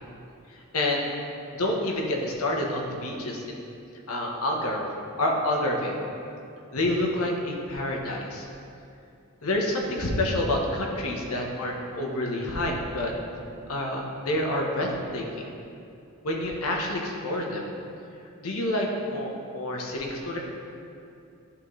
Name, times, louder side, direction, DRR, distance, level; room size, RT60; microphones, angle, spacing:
voice 1, 0.7-1.1 1.5-3.7 4.1-4.9 5.2-5.9 6.7-8.5 9.4-13.1 13.7-15.3 16.2-17.7 18.4-20.4, left 1 dB, 75° left, 0 dB, 1.0 m, -28 dB
11.0 x 3.8 x 3.2 m, 2.6 s
head